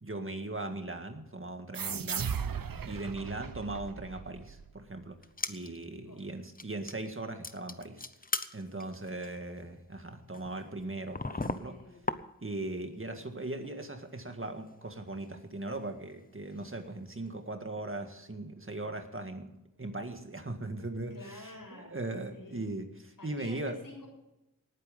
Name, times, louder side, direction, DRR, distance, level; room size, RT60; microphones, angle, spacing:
voice 1, 0.0-2.4 2.8-5.2 5.5-8.0 8.5-11.8 12.4-23.8, right 2 dB, 40° right, 6 dB, 1.9 m, -39 dB
sound 1, 1.7-5.0, right 7 dB, 80° right, 0.8 m, -37 dB
sound 2, 5.2-5.8 6.2-6.3 6.6-7.1 7.4-12.7 13.0-13.7 14.0-14.1 14.7-16.9 17.3-17.4, left 3 dB, 25° left, 0.9 m, -40 dB
voice 2, 11.3-12.0 13.0-13.2 21.1-22.0 22.3-22.7 23.2-24.1, left 1 dB, 75° left, 0 dB, 7.0 m, -49 dB
19.0 x 9.3 x 5.2 m, 0.90 s
wide cardioid pair, 65°, 34 cm